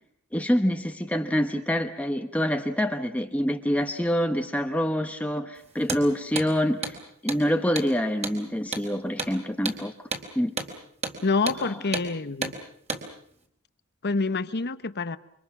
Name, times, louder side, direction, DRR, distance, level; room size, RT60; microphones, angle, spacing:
voice 1, 0.3-6.9 7.2-9.9 10.3-10.5, equal, 5° left, 1.1 m, -26 dB
Hammer, 5.8-6.0 6.4-6.5 6.8-7.0 7.3-7.4 7.8-7.9 8.2-8.4 8.7-8.9 9.2-9.3 9.7-9.8 10.1-10.3 10.6-10.7 11.0-11.2 11.5-11.6 11.9-12.1 12.4-12.6 12.9-13.0, right 4 dB, 30° right, 3.8 m, -31 dB
voice 2, 11.2-12.6 14.0-15.2, left 3 dB, 50° left, 1.0 m, -27 dB
28.5 x 25.0 x 6.1 m
head